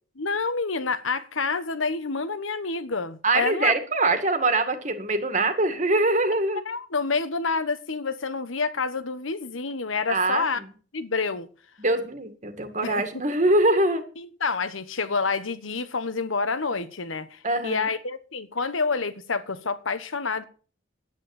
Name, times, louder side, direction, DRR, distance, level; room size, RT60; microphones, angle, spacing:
voice 1, 0.2-3.7 6.6-10.6 10.9-11.5 12.8-13.2 14.2-20.4, left 4 dB, 85° left, 1.3 m, -28 dB
voice 2, 3.2-6.6 10.1-10.4 11.8-14.0 17.4-17.9, right 2 dB, 35° right, 2.0 m, -23 dB
10.5 x 9.6 x 7.1 m
head